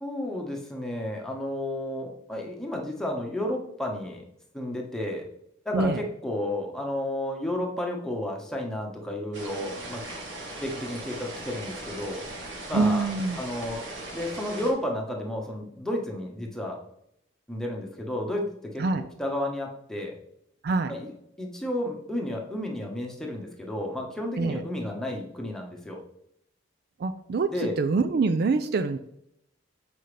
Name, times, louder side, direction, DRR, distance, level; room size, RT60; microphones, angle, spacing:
voice 1, 0.0-4.2 4.5-5.3 5.6-10.0 10.6-12.3 12.7-13.1 13.4-16.8 17.5-18.8 19.2-20.2 20.9-21.1 21.4-26.0 27.5-27.7, left 1 dB, 5° left, 0 dB, 1.1 m, -32 dB
voice 2, 5.7-6.0 12.7-13.4 18.8-19.1 20.6-21.0 24.4-24.7 27.0-29.0, right 3 dB, 55° right, 10 dB, 0.4 m, -25 dB
sound 1, 9.3-14.7, right 2 dB, 70° right, 1.9 m, -39 dB
7.8 x 5.1 x 3.3 m, 0.75 s
head